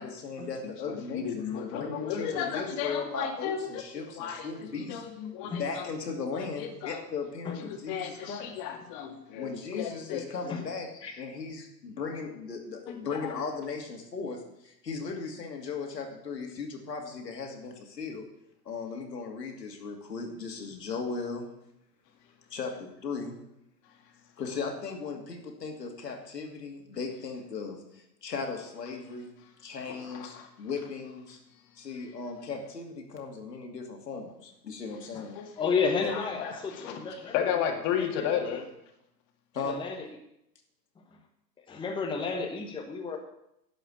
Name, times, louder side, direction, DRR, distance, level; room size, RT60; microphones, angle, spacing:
voice 1, 0.0-5.0 5.4-8.5 9.4-18.2 18.6-21.5 22.5-23.4 24.4-29.3 29.6-31.4 31.8-35.4 36.0-36.1 37.1-37.3 39.5-39.8, left 4 dB, 75° left, 1 dB, 2.6 m, -37 dB
voice 2, 0.9-5.9 6.3-7.0 7.6-10.5 12.9-13.3 23.8-24.0 29.9-30.5 35.4-35.8 36.1-38.7, left 8 dB, 35° left, 3 dB, 2.1 m, -34 dB
voice 3, 35.6-37.5 37.8-38.1 39.6-40.0 41.7-43.2, left 5 dB, 10° left, 2 dB, 1.1 m, -31 dB
11.5 x 5.5 x 8.3 m, 0.81 s
figure-of-eight pair, 105°, 50 cm